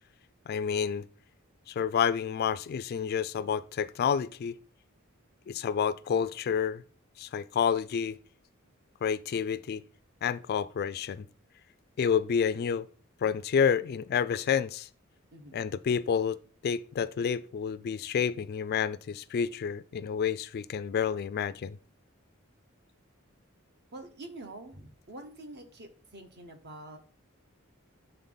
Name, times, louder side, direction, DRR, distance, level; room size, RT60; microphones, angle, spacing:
voice 1, 0.5-1.1 1.7-4.6 5.5-6.8 7.2-8.2 9.0-9.8 10.2-11.3 12.0-12.9 13.2-14.9 15.5-21.8, left 7 dB, 50° left, 0.3 m, -29 dB
voice 2, 15.3-15.6 23.9-27.0, right 2 dB, 55° right, 1.1 m, -46 dB
8.1 x 3.8 x 3.9 m
head